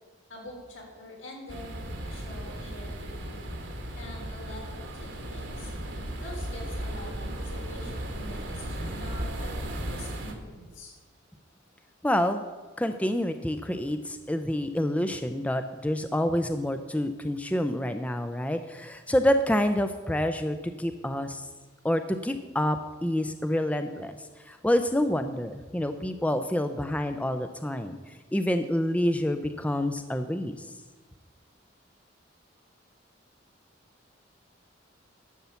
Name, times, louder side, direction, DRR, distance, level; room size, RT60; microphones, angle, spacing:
voice 1, 0.3-3.5 4.0-5.7 6.2-10.9, left 1 dB, 80° left, -2 dB, 3.8 m, -45 dB
sound 1, 1.5-10.3, right 1 dB, 70° right, 1.6 m, -36 dB
voice 2, 12.0-12.4 12.8-21.5 21.8-24.2 24.5-30.7, left 1 dB, 5° left, 8 dB, 0.5 m, -28 dB
12.0 x 7.0 x 6.9 m, 1.3 s
head